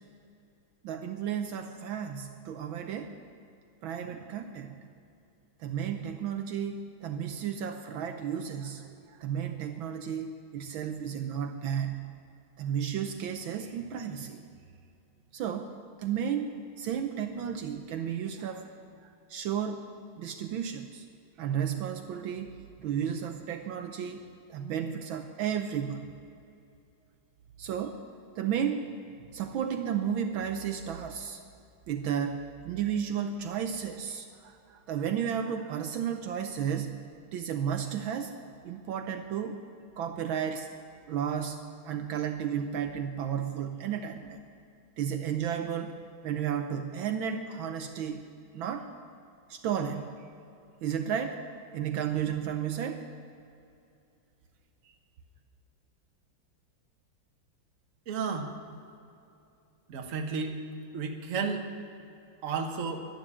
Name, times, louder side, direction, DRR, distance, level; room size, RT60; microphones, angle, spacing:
voice 1, 0.8-3.2 3.8-4.9 5.6-12.1 12.6-14.4 15.3-18.7 19.0-19.8 20.2-21.1 21.4-22.5 22.8-26.1 27.6-28.0 28.4-28.9 29.3-31.4 31.9-37.0 37.3-38.3 38.6-39.6 40.0-40.7 41.1-41.6 41.8-44.4 45.0-46.0 46.2-48.2 48.5-48.9 49.5-50.1 50.8-51.4 51.7-53.1, right 8 dB, 75° right, 6 dB, 1.5 m, -33 dB
voice 2, 58.1-58.5 59.9-60.6 60.9-61.7 62.4-63.0, right 5 dB, 45° right, 4 dB, 1.3 m, -32 dB
11.5 x 11.5 x 8.6 m, 2.6 s
omnidirectional pair, 2.3 m